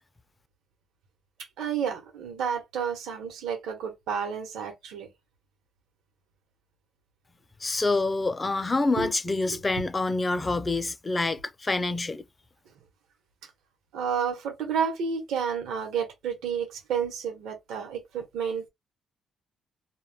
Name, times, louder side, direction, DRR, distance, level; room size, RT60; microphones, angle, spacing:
voice 1, 1.6-5.1 9.0-9.1 9.5-9.6 13.9-18.7, right 7 dB, 85° right, 0.9 m, -30 dB
voice 2, 7.6-12.2, left 3 dB, 25° left, 0.4 m, -27 dB
2.2 x 2.1 x 3.4 m
cardioid pair, 90°, 0 cm